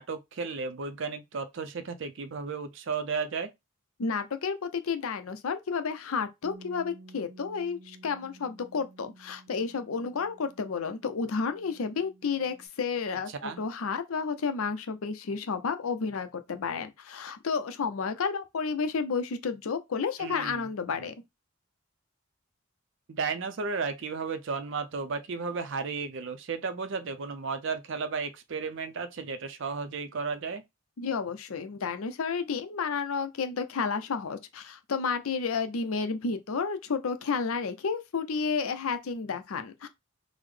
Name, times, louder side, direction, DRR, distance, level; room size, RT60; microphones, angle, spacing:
voice 1, 0.0-3.5 13.3-13.6 20.2-20.7 23.1-30.6, right 5 dB, 60° right, 0.5 m, -34 dB
voice 2, 4.0-21.1 31.0-39.9, left 5 dB, 80° left, 0.5 m, -31 dB
Bass guitar, 6.4-12.7, right 2 dB, 80° right, 0.8 m, -53 dB
3.7 x 2.1 x 3.2 m
head